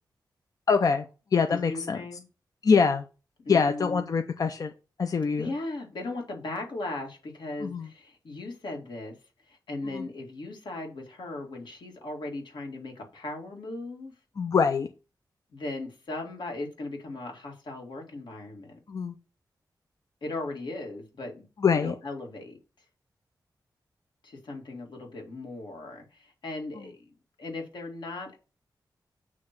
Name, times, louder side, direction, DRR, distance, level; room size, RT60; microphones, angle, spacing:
voice 1, 0.7-1.0 1.3-2.0 2.6-3.0 3.5-4.7 5.0-5.5 7.6-7.9 9.9-10.0 14.4-14.9 18.9-19.1 21.6-21.9, left 5 dB, 50° left, 0.6 m, -24 dB
voice 2, 1.5-2.2 3.5-4.1 5.3-9.2 9.5-14.1 15.5-18.8 20.2-22.6 24.2-27.1 27.4-28.4, left 2 dB, 85° left, 2.2 m, -37 dB
8.5 x 3.1 x 5.8 m
wide cardioid pair, 130°, 8 cm